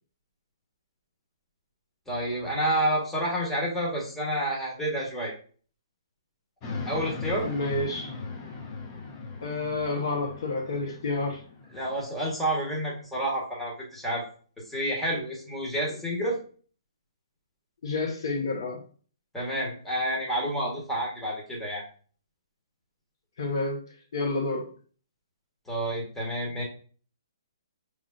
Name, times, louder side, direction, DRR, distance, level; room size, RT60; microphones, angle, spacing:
voice 1, 2.1-5.3 6.8-7.5 11.7-14.2 14.7-16.4 19.3-21.8 25.7-26.6, right 1 dB, 5° left, 1.3 m, -29 dB
sound 1, 6.6-12.1, left 4 dB, 30° left, 0.8 m, -38 dB
voice 2, 7.4-8.1 9.4-11.4 17.8-18.8 23.4-23.8 24.1-24.7, left 3 dB, 55° left, 1.1 m, -29 dB
4.9 x 3.4 x 2.6 m
figure-of-eight pair, 130°, 3 cm